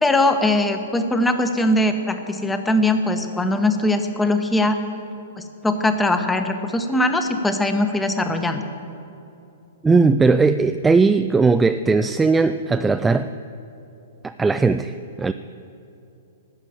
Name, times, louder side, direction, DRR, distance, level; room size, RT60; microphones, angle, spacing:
voice 1, 0.0-4.8 5.4-8.6, left 1 dB, 10° left, 7 dB, 1.0 m, -21 dB
voice 2, 9.8-13.3 14.2-15.3, right 4 dB, 10° right, 10 dB, 0.3 m, -18 dB
11.5 x 7.3 x 9.0 m, 2.8 s
figure-of-eight pair, 115°, 0 cm